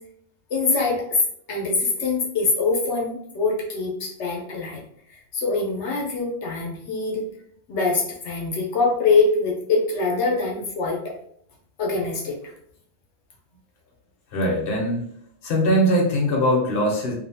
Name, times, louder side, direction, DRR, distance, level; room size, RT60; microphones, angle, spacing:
voice 1, 0.5-1.2 1.5-4.8 5.1-7.3 7.7-11.2 11.8-12.5, left 3 dB, 75° left, -2 dB, 1.0 m, -24 dB
voice 2, 14.3-15.0 15.4-17.1, equal, 55° left, -2 dB, 1.0 m, -21 dB
2.7 x 2.2 x 2.7 m, 0.67 s
omnidirectional pair, 1.2 m